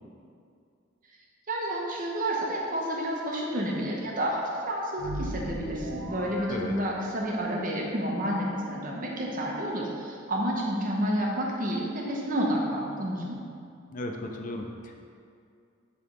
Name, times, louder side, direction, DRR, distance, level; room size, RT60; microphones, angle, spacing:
voice 1, 1.5-4.4 4.7-13.4, equal, 45° right, -2 dB, 0.9 m, -30 dB
sound 1, 5.0-7.5, right 1 dB, 85° right, 0.7 m, -38 dB
voice 2, 13.9-15.1, left 1 dB, 40° left, 3 dB, 0.5 m, -36 dB
6.8 x 3.4 x 5.1 m, 2.3 s
head